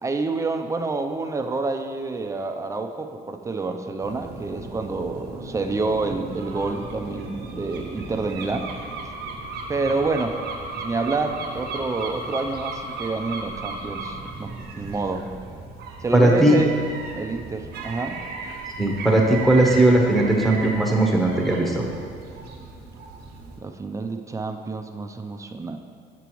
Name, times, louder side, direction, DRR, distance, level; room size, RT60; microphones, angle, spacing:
voice 1, 0.0-8.7 9.7-10.4 10.7-15.3 16.0-16.7 17.2-18.2 23.6-25.8, right 3 dB, 20° right, 6 dB, 0.5 m, -28 dB
sound 1, 4.0-23.6, right 3 dB, 75° right, 1.1 m, -35 dB
voice 2, 16.1-16.6 18.8-21.8, right 1 dB, ahead, 0 dB, 1.0 m, -18 dB
8.3 x 6.7 x 3.1 m, 2.2 s
cardioid pair, 110°, 17 cm